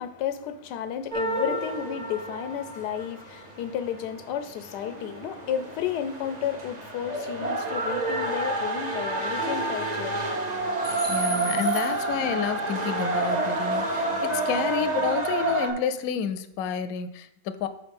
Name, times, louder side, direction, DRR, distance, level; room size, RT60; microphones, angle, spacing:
voice 1, 0.0-10.2, left 9 dB, 90° left, 1.2 m, -32 dB
sound 1, 1.1-15.7, right 2 dB, 35° right, 0.8 m, -29 dB
voice 2, 11.1-17.7, left 7 dB, 70° left, 0.9 m, -30 dB
6.3 x 4.5 x 5.3 m
omnidirectional pair, 1.7 m